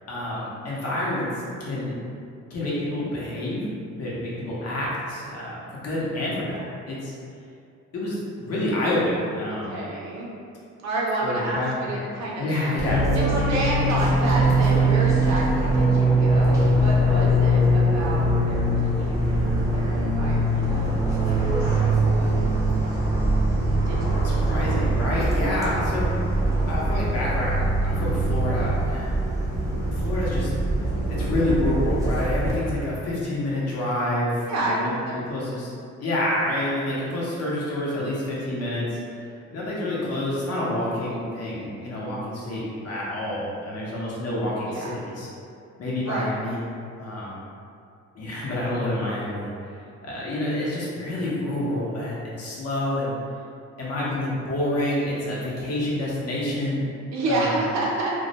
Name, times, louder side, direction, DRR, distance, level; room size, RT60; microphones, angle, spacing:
voice 1, 0.1-1.3 1.6-2.0 2.5-3.7 4.0-7.1 7.9-9.8 11.2-12.1 12.4-13.0 24.2-26.1 26.7-29.2 29.9-30.5 31.1-34.9 35.3-35.7 36.0-39.0 39.5-45.3 45.8-46.6 47.0-47.4 48.1-49.5 50.0-53.1 53.8-56.8 57.3-57.5, left 1 dB, 55° left, -6 dB, 0.7 m, -28 dB
voice 2, 9.7-10.3 10.8-12.4 13.1-22.3 23.9-24.3 25.7-25.9 34.5-35.2 44.7-45.0 46.0-46.3 57.1-58.1, right 2 dB, 65° right, -4 dB, 0.6 m, -30 dB
Fixed-wing aircraft airplane, 12.8-32.5, right 1 dB, 10° right, 0.5 m, -22 dB
2.2 x 2.0 x 2.7 m, 2.4 s
cardioid pair, 90°, 30 cm